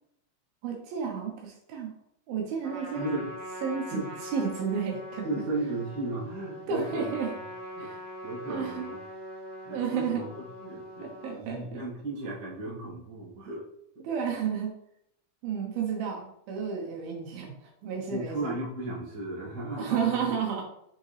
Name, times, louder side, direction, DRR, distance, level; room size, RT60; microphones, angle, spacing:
voice 1, 0.6-2.0 2.3-3.1 3.6-5.4 6.7-7.3 7.8-8.0 8.5-8.9 9.7-10.3 11.0-11.8 14.0-14.7 15.4-18.6 19.8-20.6, right 6 dB, 75° right, 1 dB, 2.8 m, -32 dB
Trumpet, 2.6-11.4, equal, 5° right, 2.0 m, -42 dB
voice 2, 2.9-3.3 3.9-4.1 5.2-7.4 7.8-7.9 8.2-9.0 9.6-11.1 11.3-13.7 13.9-14.0 17.8-20.2, right 2 dB, 35° right, -6 dB, 2.1 m, -35 dB
7.1 x 5.1 x 3.3 m, 0.74 s
omnidirectional pair, 4.4 m